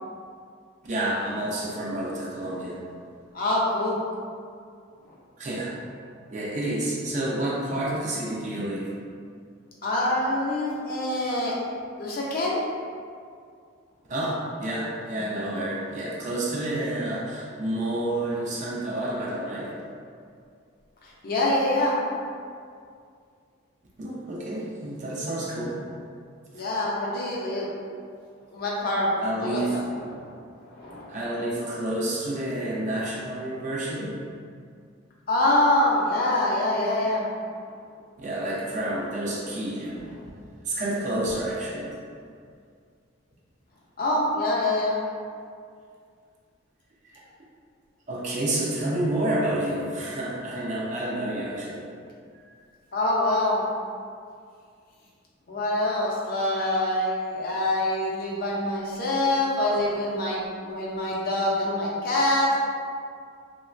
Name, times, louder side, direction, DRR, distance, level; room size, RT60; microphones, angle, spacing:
voice 1, 0.8-2.8 5.4-5.8 6.3-8.9 14.1-19.8 24.0-25.8 29.2-29.8 31.1-34.2 38.2-40.0 40.7-41.9 48.1-51.9 52.3-52.5, right 1 dB, 35° right, -4 dB, 0.4 m, -29 dB
voice 2, 3.3-4.0 9.8-11.6 12.0-12.6 21.2-22.0 26.5-27.7 28.5-29.1 29.4-29.8 30.1-30.2 30.7-31.1 35.3-37.2 44.0-45.0 52.9-53.6 55.5-62.5, left 1 dB, 45° left, -4 dB, 0.4 m, -25 dB
2.9 x 2.1 x 2.4 m, 2.2 s
head